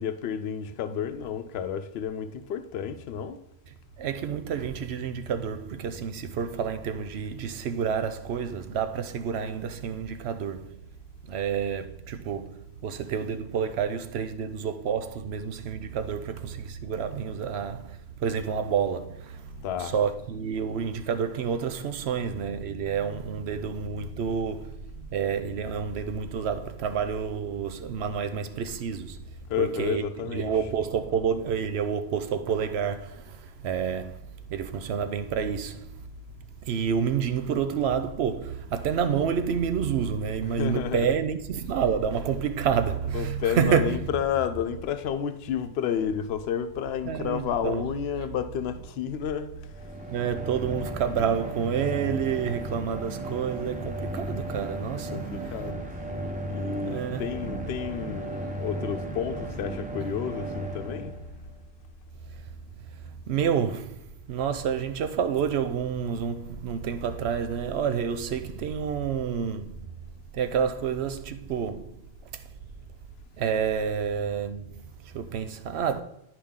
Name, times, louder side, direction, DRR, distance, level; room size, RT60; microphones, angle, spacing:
voice 1, 0.0-3.4 19.6-20.0 29.5-30.6 40.4-41.1 43.0-49.9 52.3-52.6 55.0-56.1 56.4-61.1, left 8 dB, 75° left, 0.8 m, -31 dB
voice 2, 4.0-10.8 11.2-36.1 36.6-44.1 47.0-47.8 48.2-48.3 50.1-55.7 56.8-57.3 62.3-62.4 62.9-69.9 70.3-72.0 72.3-72.4 73.3-76.0, right 7 dB, 80° right, 0.9 m, -29 dB
sound 1, 49.7-61.6, right 1 dB, 10° right, 0.6 m, -35 dB
10.0 x 4.8 x 3.6 m
omnidirectional pair, 1.1 m